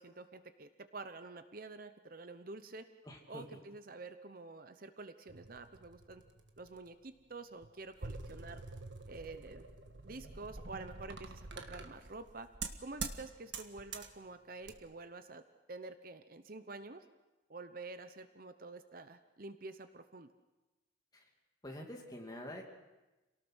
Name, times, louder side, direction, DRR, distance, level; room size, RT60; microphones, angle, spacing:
voice 1, 0.0-2.8 3.3-6.2 6.6-8.6 9.1-9.7 10.0-12.5 12.8-15.4 15.7-17.0 17.5-20.3, right 3 dB, 45° right, 10 dB, 0.8 m, -48 dB
voice 2, 3.1-3.4 21.1-21.2 21.6-22.6, left 1 dB, 20° left, 1 dB, 2.7 m, -46 dB
sound 1, 5.3-6.9 7.6-13.2 13.5-14.1 14.6-14.8, right 4 dB, 65° right, 1.6 m, -46 dB
27.0 x 18.0 x 6.3 m, 1.1 s
head